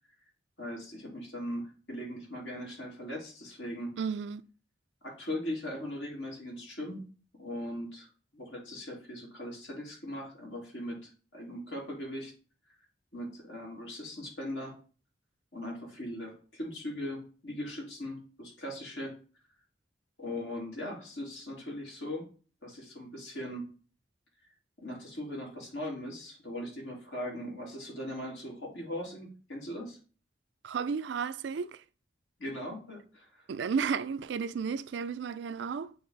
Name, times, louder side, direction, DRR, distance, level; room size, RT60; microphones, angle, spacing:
voice 1, 0.6-3.9 5.0-7.0 7.4-8.1 8.3-12.3 13.1-14.7 15.5-19.1 20.2-22.2 22.6-23.6 24.8-30.0 32.4-33.4, left 1 dB, 85° left, 2.8 m, -39 dB
voice 2, 4.0-4.4 30.6-31.8 33.5-35.9, right 6 dB, 75° right, 0.4 m, -33 dB
8.6 x 3.2 x 4.0 m
head